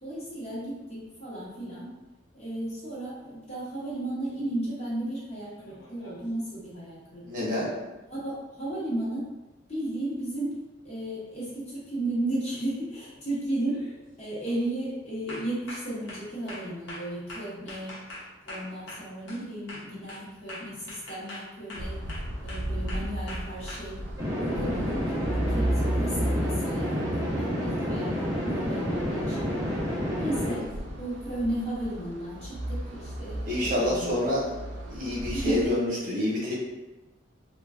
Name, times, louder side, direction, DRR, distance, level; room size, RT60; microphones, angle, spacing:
voice 1, 0.0-2.0 2.3-7.5 8.1-9.3 9.7-10.6 10.8-13.9 14.2-24.0 24.3-30.7 31.0-34.3 35.3-35.7, right 1 dB, 35° left, -8 dB, 0.8 m, -34 dB
sound 1, 5.6-6.3 10.5-10.6 12.1-12.4 12.9-13.2 13.7-14.0 14.4-14.7 15.3-19.4 19.7-23.8, left 1 dB, 70° left, 0.9 m, -43 dB
voice 2, 7.2-7.7 30.8-30.9 33.4-34.4 34.9-36.5, left 1 dB, 40° right, -7 dB, 1.0 m, -28 dB
sound 2, 21.8-35.7, right 1 dB, 65° right, 0.5 m, -34 dB
sound 3, 24.2-30.5, equal, 15° right, 0.6 m, -29 dB
3.1 x 2.2 x 2.4 m, 1.1 s
head